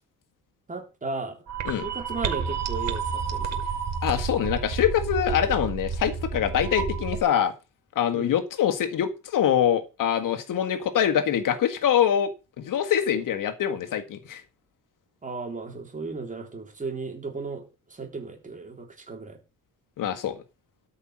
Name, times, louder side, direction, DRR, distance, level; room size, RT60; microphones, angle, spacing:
voice 1, 0.7-1.4 1.7-3.7 8.1-8.3 15.2-19.4, right 4 dB, 25° right, 3.5 m, -35 dB
sound 1, 1.5-7.2, right 6 dB, 50° right, 2.2 m, -30 dB
voice 2, 4.0-7.5 8.0-12.3 12.6-14.4 20.0-20.4, left 9 dB, 70° left, 1.8 m, -24 dB
13.5 x 5.7 x 7.4 m
cardioid pair, 145°, 33 cm